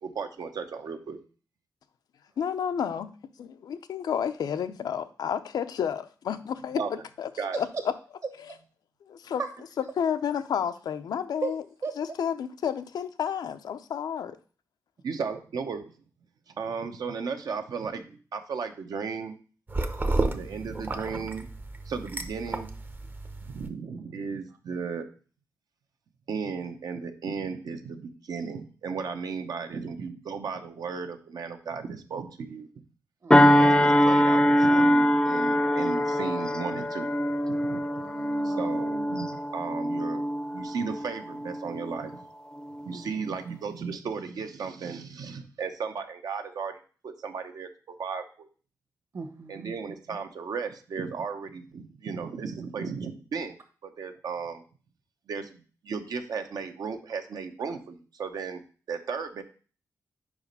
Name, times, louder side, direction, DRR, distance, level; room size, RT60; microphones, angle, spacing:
voice 1, 0.0-1.2 6.8-6.9 7.4-7.6 15.0-15.9 16.5-19.3 20.1-21.5 21.9-22.7 23.4-25.0 26.3-32.7 33.6-37.1 37.5-37.8 38.4-40.2 40.5-42.2 42.8-48.5 49.5-53.6 53.8-54.6 55.3-58.6 58.9-59.4, right 5 dB, 70° right, 7 dB, 0.8 m, -35 dB
voice 2, 2.4-3.1 3.4-7.3 7.6-7.9 9.1-9.4 9.8-11.6 12.0-14.4, left 8 dB, 85° left, 10 dB, 0.5 m, -31 dB
sound 1, 19.7-23.7, right 2 dB, 30° right, 0.7 m, -32 dB
voice 3, 33.2-33.6 38.0-38.8 42.9-43.4 49.1-49.7, right 4 dB, 50° right, 7 dB, 1.3 m, -36 dB
sound 2, 33.3-42.2 42.6-42.8, equal, 10° left, 0.5 m, -23 dB
5.0 x 4.8 x 5.4 m, 0.39 s
wide cardioid pair, 120°, 7 cm